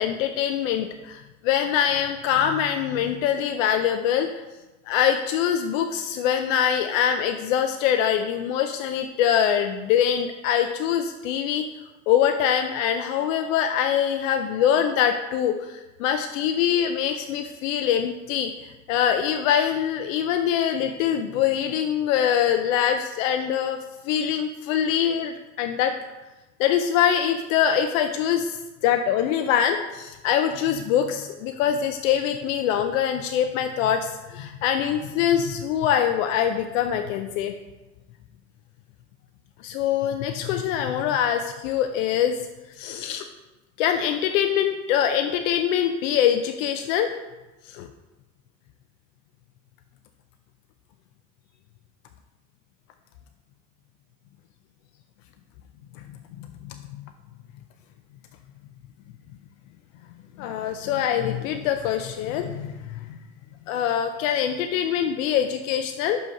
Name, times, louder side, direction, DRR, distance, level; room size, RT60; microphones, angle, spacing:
voice 1, 0.0-4.4 4.9-11.7 12.1-25.9 26.6-37.5 39.6-42.3 42.8-43.2 43.8-47.1 47.7-47.9 56.4-57.0 60.4-63.2 63.7-66.2, left 9 dB, 85° left, 6 dB, 0.5 m, -24 dB
5.5 x 5.5 x 5.4 m, 1.1 s
hypercardioid pair, 60°, 38 cm